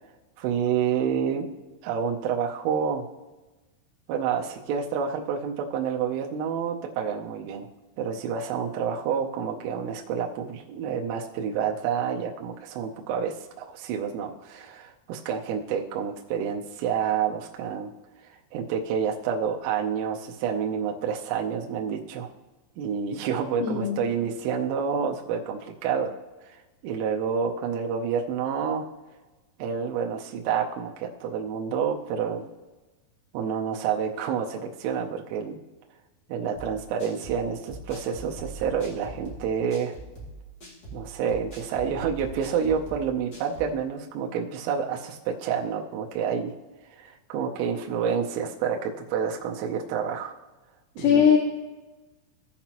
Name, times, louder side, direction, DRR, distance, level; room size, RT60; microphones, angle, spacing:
voice 1, 0.4-1.5 1.8-3.1 4.1-7.7 8.0-17.9 18.5-22.3 22.8-26.1 26.5-28.8 29.6-32.4 33.3-35.6 36.3-39.9 40.9-46.5 47.0-50.3 51.0-51.4, right 7 dB, 80° right, 1 dB, 3.2 m, -28 dB
voice 2, 23.6-24.0 51.0-51.4, left 8 dB, 90° left, 1 dB, 3.5 m, -20 dB
sound 1, 36.5-43.8, right 2 dB, 40° left, 1.5 m, -42 dB
17.0 x 5.8 x 2.9 m, 1.2 s
omnidirectional pair, 5.9 m